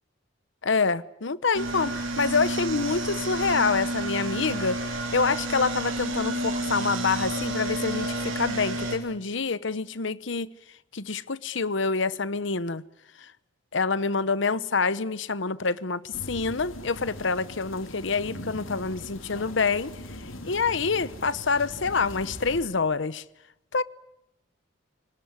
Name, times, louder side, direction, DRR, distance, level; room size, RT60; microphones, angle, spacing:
voice 1, 0.6-10.5 10.9-12.8 13.2-13.3 13.7-19.9 20.4-23.2 23.7-23.8, left 4 dB, 65° left, 0.9 m, -27 dB
sound 1, 1.5-9.0, right 2 dB, 80° right, 4.7 m, -30 dB
sound 2, 16.1-22.6, left 1 dB, 90° left, 3.9 m, -41 dB
26.0 x 19.0 x 9.7 m
head